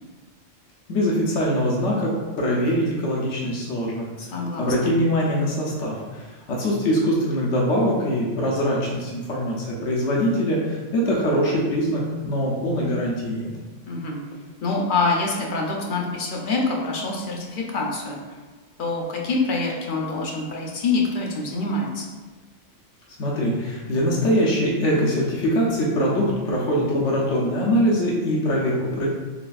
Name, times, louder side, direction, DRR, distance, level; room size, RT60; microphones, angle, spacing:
voice 1, 0.9-4.0 4.6-13.5 23.2-29.1, equal, 80° left, -4 dB, 1.0 m, -23 dB
voice 2, 4.2-4.9 13.9-14.2 14.6-18.2 18.8-22.1, left 3 dB, 55° left, -1 dB, 0.7 m, -25 dB
4.0 x 3.3 x 2.3 m, 1.3 s
omnidirectional pair, 1.2 m